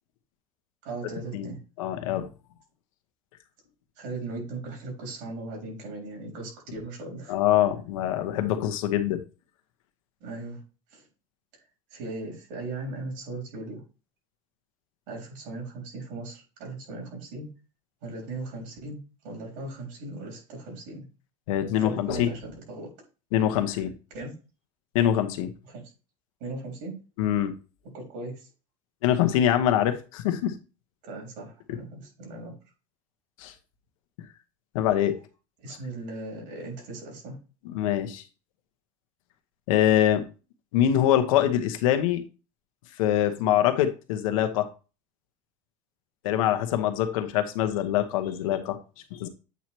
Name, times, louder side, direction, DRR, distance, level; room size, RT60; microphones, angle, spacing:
voice 1, 0.8-1.6 4.0-7.4 10.2-10.6 10.9-11.1 11.9-13.8 15.1-17.5 18.0-21.1 21.8-22.9 23.7-23.8 24.1-24.3 25.6-25.9 26.4-27.0 27.9-28.5 31.0-32.5 35.6-37.4, right 2 dB, 70° right, -1 dB, 3.9 m, -38 dB
voice 2, 1.3-2.3 7.3-9.2 21.5-22.3 23.3-23.9 24.9-25.5 27.2-27.5 29.0-30.5 33.4-33.5 34.7-35.1 37.7-38.2 39.7-40.3 40.7-42.2 43.0-44.7 46.2-48.8 49.1-49.3, left 11 dB, 85° left, 8 dB, 1.0 m, -24 dB
8.2 x 3.0 x 4.5 m, 0.33 s
supercardioid pair, 130°, 17 cm